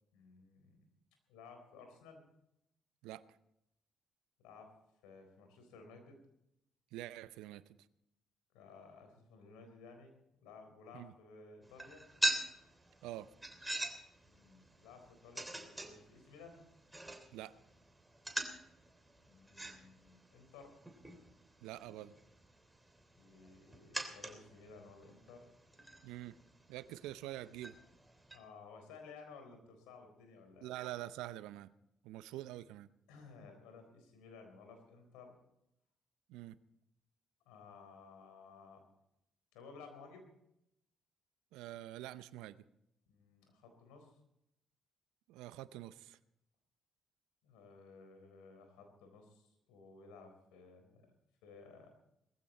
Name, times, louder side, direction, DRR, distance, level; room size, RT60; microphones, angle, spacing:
voice 1, 0.1-0.8 1.3-2.2 4.4-4.7 5.0-6.2 8.5-10.1 10.4-12.0 14.3-16.6 19.2-20.7 23.2-25.5 28.3-30.7 33.1-35.3 37.5-38.8 39.5-40.3 43.1-44.2 47.4-51.0 51.4-51.9, left 4 dB, 80° left, 5 dB, 4.1 m, -56 dB
voice 2, 6.9-7.6 10.9-11.1 13.0-13.3 17.3-17.5 21.6-22.1 26.0-26.4 26.7-27.8 30.6-31.7 32.0-32.9 36.3-36.6 41.5-42.6 45.3-46.2, right 14 dB, 80° right, 16 dB, 0.6 m, -46 dB
sound 1, 11.6-28.4, right 1 dB, 10° right, 3.2 m, -44 dB
19.5 x 15.0 x 4.3 m, 0.81 s
hypercardioid pair, 50°, 0 cm